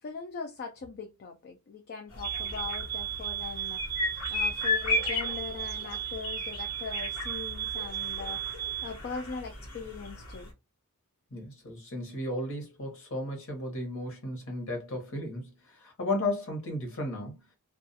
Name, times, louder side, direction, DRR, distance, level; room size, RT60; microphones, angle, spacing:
voice 1, 0.0-3.8 4.3-8.4 8.8-10.5, left 5 dB, 45° left, 0.3 m, -40 dB
sound 1, 2.1-10.5, left 3 dB, 75° left, 1.2 m, -35 dB
sound 2, 2.2-9.0, right 13 dB, 50° right, 0.6 m, -36 dB
voice 2, 11.3-17.4, left 1 dB, 60° left, 1.0 m, -34 dB
2.3 x 2.2 x 2.7 m
head